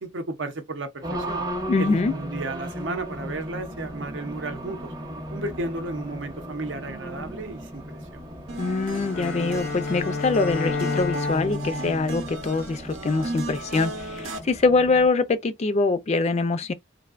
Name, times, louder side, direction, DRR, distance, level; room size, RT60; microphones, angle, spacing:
voice 1, 0.0-1.4 1.8-4.9 5.3-8.2, right 2 dB, 70° right, 0.7 m, -33 dB
Race car auto racing, 1.0-15.1, equal, 20° right, 0.6 m, -37 dB
voice 2, 1.7-2.1 8.6-16.7, left 3 dB, 35° left, 0.3 m, -24 dB
sound 1, 8.5-14.4, right 2 dB, 90° right, 0.8 m, -35 dB
Bowed string instrument, 9.1-13.3, left 4 dB, 80° left, 0.7 m, -31 dB
3.3 x 2.5 x 2.4 m
head